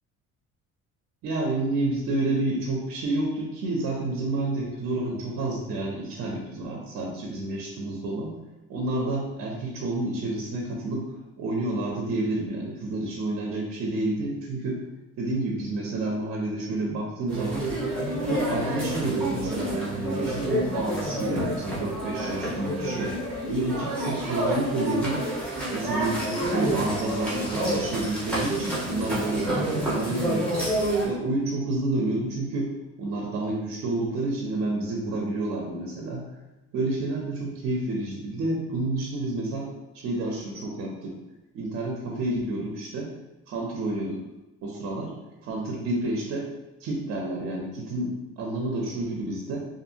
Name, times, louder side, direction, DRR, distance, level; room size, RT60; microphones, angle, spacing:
voice 1, 1.2-8.3 8.7-11.1 11.4-14.8 15.2-17.7 18.2-23.1 23.5-25.3 25.7-26.2 26.5-30.5 31.0-32.7 33.0-36.3 36.7-41.2 41.5-43.1 43.5-44.2 44.6-45.1 45.4-46.5 46.8-49.7, right 2 dB, 50° right, -1 dB, 0.5 m, -29 dB
sound 1, 17.3-31.0, right 1 dB, 5° left, 0.8 m, -28 dB
2.7 x 2.6 x 2.5 m, 1.0 s
cardioid pair, 160°, 29 cm